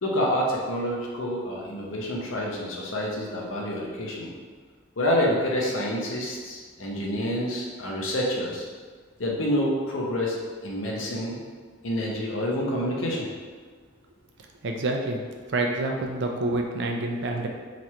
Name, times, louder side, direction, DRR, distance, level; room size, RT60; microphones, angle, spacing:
voice 1, 0.0-4.3 5.0-8.7 9.2-10.4 10.6-11.4 11.8-13.3, equal, 75° left, -2 dB, 0.8 m, -27 dB
voice 2, 14.6-15.2 15.5-17.5, right 2 dB, 60° right, 2 dB, 0.4 m, -27 dB
3.0 x 2.5 x 4.3 m, 1.5 s
head